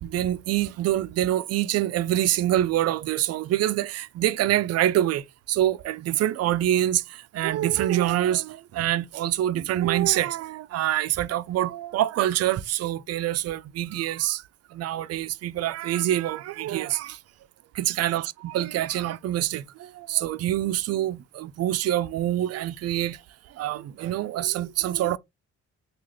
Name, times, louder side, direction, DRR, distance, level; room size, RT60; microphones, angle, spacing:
voice 1, 0.0-17.2 17.7-23.2 23.5-25.2, right 13 dB, 55° right, 0.4 m, -26 dB
3.7 x 2.4 x 3.1 m
cardioid pair, 90°, 30 cm